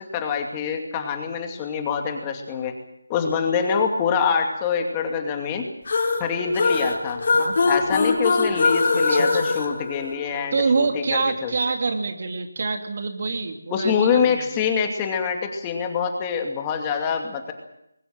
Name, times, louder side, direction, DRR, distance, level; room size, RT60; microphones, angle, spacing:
voice 1, 0.0-2.7 3.1-5.7 6.2-7.2 7.7-11.6 13.7-17.5, left 6 dB, 15° left, 4 dB, 2.5 m, -25 dB
sound 1, 5.9-10.6, left 3 dB, 45° left, 3.8 m, -22 dB
voice 2, 9.1-9.5 10.5-14.6, right 4 dB, 45° right, 5 dB, 2.8 m, -26 dB
22.0 x 20.0 x 7.6 m, 0.80 s
figure-of-eight pair, 160°, 0 cm